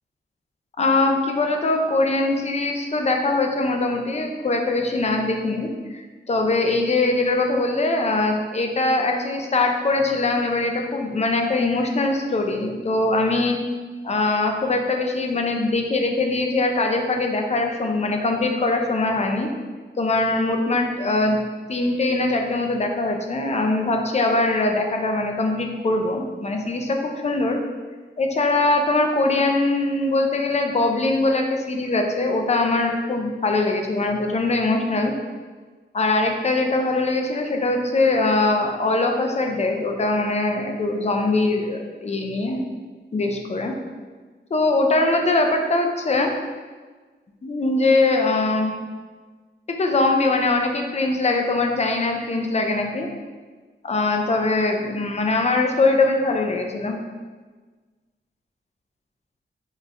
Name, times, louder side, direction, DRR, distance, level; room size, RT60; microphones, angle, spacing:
voice 1, 0.8-13.6 14.0-19.5 20.0-21.4 21.7-27.6 28.2-35.1 35.9-42.7 43.1-43.7 44.5-46.3 47.4-48.7 49.7-53.1 53.8-57.0, left 2 dB, 35° left, 3 dB, 0.5 m, -22 dB
5.5 x 3.0 x 2.5 m, 1.4 s
wide cardioid pair, 140°, 19 cm